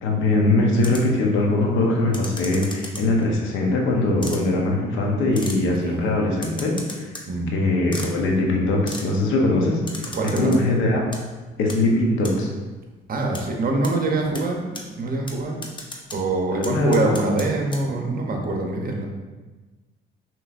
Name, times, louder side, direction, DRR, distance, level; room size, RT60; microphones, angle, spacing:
voice 1, 0.0-7.1 7.5-11.0 11.6-12.5 16.5-17.2, left 2 dB, 85° left, 0 dB, 0.9 m, -21 dB
sound 1, 0.8-1.2 2.1-3.2 4.2-4.4 5.3-5.6 6.4-7.3 7.9-8.1 8.9-9.1 9.9-10.6 11.0-11.2 11.7-11.8 12.2-12.3 13.3-13.4 13.8-13.9 14.3-14.4 14.7-14.8 15.3-15.4 15.6-16.2 16.6-17.5 17.7-17.8, left 2 dB, 25° left, 0.7 m, -35 dB
voice 2, 10.1-10.6 13.1-15.7 16.1-19.1, right 2 dB, 45° right, 1 dB, 0.8 m, -24 dB
5.9 x 3.1 x 2.5 m, 1.2 s
cardioid pair, 90°, 20 cm